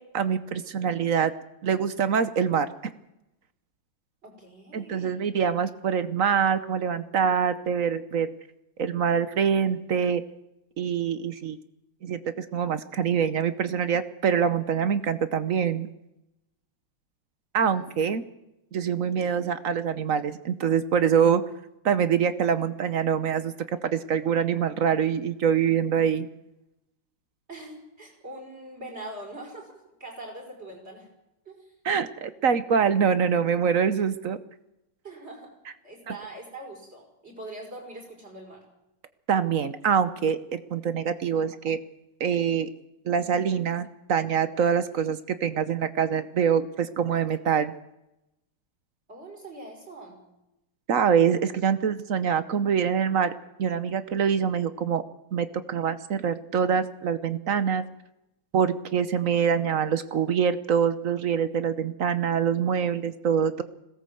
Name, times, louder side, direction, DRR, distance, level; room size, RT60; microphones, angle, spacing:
voice 1, 0.1-1.3 1.6-2.7 4.7-8.3 8.8-10.2 10.8-11.6 12.0-15.9 17.5-18.2 18.7-21.4 21.8-23.5 23.8-26.3 31.8-34.4 36.1-36.2 39.3-41.8 42.2-42.7 43.1-47.7 50.9-53.3 53.6-55.0 55.3-57.8 58.5-63.6, right 7 dB, 55° right, 13 dB, 0.9 m, -25 dB
voice 2, 4.2-5.1 17.7-17.8 27.5-31.1 31.5-31.7 35.0-35.5 35.8-38.6 49.1-50.2, right 2 dB, 30° right, 1 dB, 6.0 m, -42 dB
21.0 x 17.5 x 7.7 m, 0.89 s
omnidirectional pair, 2.3 m